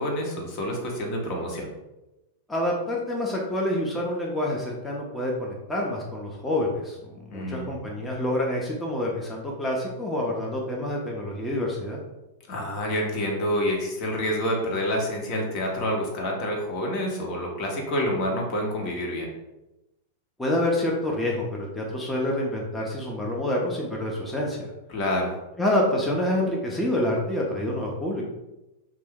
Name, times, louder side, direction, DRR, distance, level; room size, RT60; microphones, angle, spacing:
voice 1, 0.0-1.7 7.3-7.8 12.5-19.3 24.9-25.3, equal, 50° left, 0 dB, 0.8 m, -28 dB
voice 2, 2.5-12.0 20.4-24.7 25.6-28.2, left 1 dB, 10° left, -3 dB, 0.6 m, -27 dB
2.5 x 2.3 x 3.6 m, 0.97 s
hypercardioid pair, 105°, 0 cm